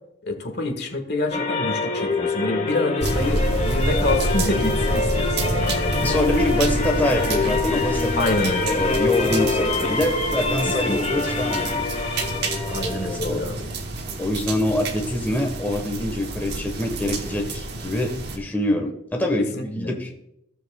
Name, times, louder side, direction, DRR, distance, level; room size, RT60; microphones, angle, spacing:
voice 1, 0.2-5.8 8.2-8.8 10.8-11.2 12.7-13.7 19.5-19.9, left 2 dB, 55° left, 4 dB, 1.6 m, -27 dB
sound 1, 1.3-13.2, left 3 dB, 35° left, 1.6 m, -25 dB
sound 2, 3.0-18.4, right 2 dB, 55° right, 1.2 m, -28 dB
voice 2, 6.0-11.9 12.9-13.4 14.2-20.1, left 1 dB, 10° left, 2 dB, 1.2 m, -25 dB
16.0 x 7.4 x 2.3 m, 0.82 s
head